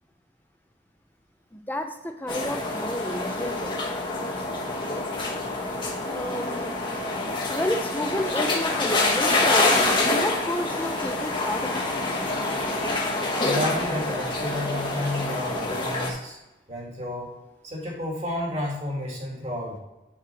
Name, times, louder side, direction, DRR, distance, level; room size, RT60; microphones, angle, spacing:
voice 1, 1.5-3.7 6.0-6.8 7.5-9.8 10.1-11.9 15.2-15.3, left 1 dB, 10° left, 5 dB, 0.5 m, -31 dB
Mar desde adentro de la escollera +lowshelf, 2.3-16.1, left 2 dB, 25° left, 1.2 m, -26 dB
voice 2, 13.4-16.4 16.7-17.3 17.6-19.8, left 1 dB, 35° right, -3 dB, 2.3 m, -31 dB
8.9 x 4.7 x 4.3 m, 1.0 s
head